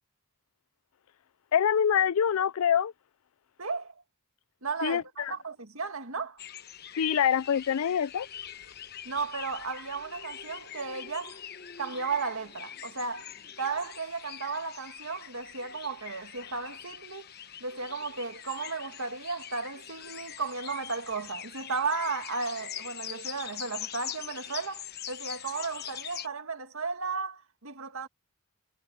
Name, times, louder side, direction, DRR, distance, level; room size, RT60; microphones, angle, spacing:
voice 1, 1.5-2.9 4.8-5.3 6.9-8.3, left 8 dB, 80° left, 0.4 m, -25 dB
voice 2, 3.6-3.9 4.6-6.4 9.1-11.4 11.8-17.3 17.6-28.1, right 4 dB, 75° right, 2.0 m, -34 dB
sound 1, 6.4-26.3, left 10 dB, 45° left, 1.1 m, -43 dB
head